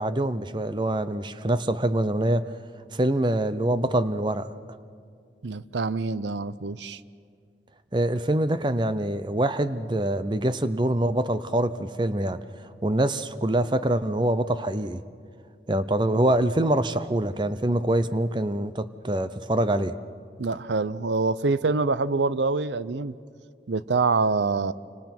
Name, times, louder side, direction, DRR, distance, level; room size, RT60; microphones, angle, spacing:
voice 1, 0.0-2.5 2.9-4.5 7.9-12.4 12.8-15.0 15.7-19.9, right 1 dB, 25° right, 0.7 m, -25 dB
voice 2, 5.4-7.0 20.4-23.1 23.7-24.7, right 3 dB, 90° right, 0.6 m, -25 dB
29.0 x 26.0 x 6.0 m
head